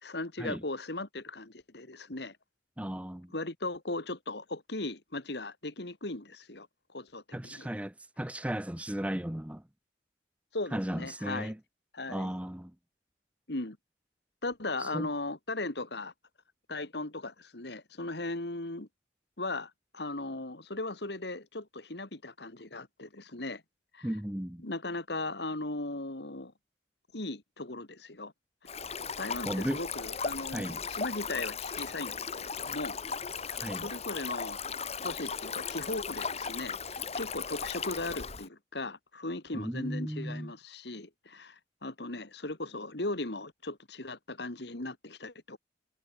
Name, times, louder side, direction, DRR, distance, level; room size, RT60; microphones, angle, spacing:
voice 1, 0.0-2.4 3.3-7.7 10.5-11.5 11.9-12.3 13.5-13.8 14.4-16.1 16.7-18.9 19.4-23.6 23.9-24.1 24.6-26.5 27.1-28.3 29.2-33.0 33.7-34.6 35.0-36.8 37.2-45.6, left 2 dB, 60° left, 2.2 m, -38 dB
voice 2, 2.8-3.3 7.3-9.6 10.7-11.6 12.1-12.7 14.8-15.1 24.0-24.6 29.5-29.8 30.5-30.8 33.5-33.9 39.5-40.5, equal, 5° right, 0.7 m, -35 dB
Stream, 28.7-38.5, left 5 dB, 35° left, 1.5 m, -37 dB
head